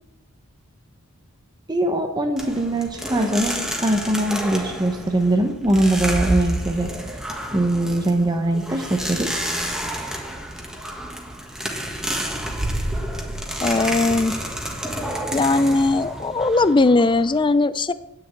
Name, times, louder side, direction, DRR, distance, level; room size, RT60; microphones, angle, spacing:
voice 1, 1.7-6.9 7.5-9.5, right 1 dB, 20° right, 4 dB, 1.0 m, -22 dB
sound 1, 2.4-17.4, right 1 dB, 5° right, 1.6 m, -29 dB
voice 2, 13.6-14.3 15.3-17.9, left 3 dB, 20° left, 14 dB, 0.5 m, -19 dB
9.8 x 6.7 x 8.2 m, 0.89 s
head